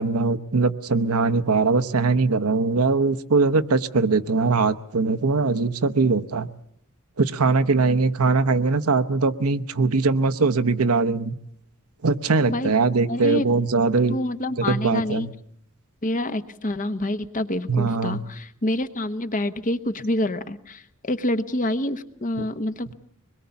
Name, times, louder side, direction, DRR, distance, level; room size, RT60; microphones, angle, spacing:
voice 1, 0.0-6.5 7.2-11.3 12.0-14.2 14.7-15.3 17.7-18.2 22.4-22.5, right 4 dB, 75° right, 11 dB, 0.9 m, -21 dB
voice 2, 13.1-13.5 14.1-15.3 16.0-22.9, left 1 dB, 35° left, 11 dB, 0.9 m, -27 dB
24.0 x 21.5 x 7.0 m, 0.69 s
head